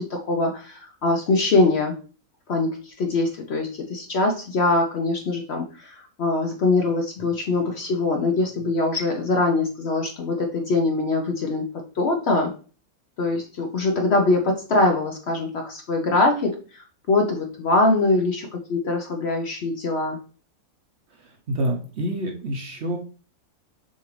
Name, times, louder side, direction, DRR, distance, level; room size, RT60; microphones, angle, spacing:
voice 1, 0.0-1.9 2.5-12.5 13.2-20.2, left 2 dB, 60° left, 2 dB, 0.8 m, -23 dB
voice 2, 21.1-23.0, right 1 dB, 55° right, 2 dB, 0.9 m, -28 dB
6.6 x 2.5 x 3.1 m, 0.38 s
omnidirectional pair, 1.6 m